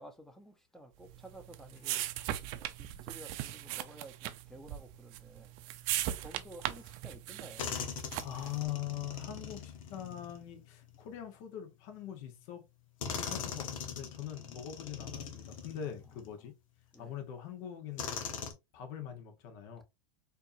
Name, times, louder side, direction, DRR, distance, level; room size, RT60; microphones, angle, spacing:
voice 1, 0.0-2.0 2.6-5.5 5.9-7.7 16.9-17.1, right 1 dB, ahead, 0.7 m, -53 dB
sound 1, 1.1-8.5, right 13 dB, 50° right, 0.5 m, -39 dB
sound 2, 6.9-7.0 7.6-11.2 12.2-12.3 13.0-16.3 16.9-17.0 18.0-18.5, left 7 dB, 80° left, 1.0 m, -41 dB
voice 2, 8.2-12.6 13.1-16.5 17.0-18.2 18.7-19.8, left 10 dB, 55° left, 1.1 m, -42 dB
4.5 x 2.7 x 2.6 m
supercardioid pair, 120°, 17 cm